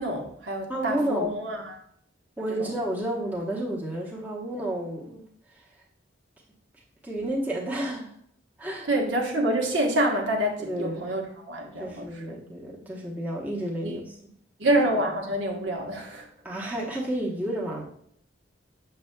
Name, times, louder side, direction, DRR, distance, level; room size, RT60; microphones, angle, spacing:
voice 1, 0.0-1.8 2.5-2.7 4.6-4.7 8.9-12.4 13.8-14.0 14.6-16.3, right 1 dB, 70° right, 1 dB, 1.1 m, -27 dB
voice 2, 0.7-1.3 2.4-5.2 5.5-5.6 7.0-8.1 8.6-8.9 10.6-11.1 11.8-14.0 16.4-17.8, right 1 dB, 10° right, -4 dB, 0.9 m, -31 dB
6.8 x 6.6 x 2.2 m, 0.64 s
head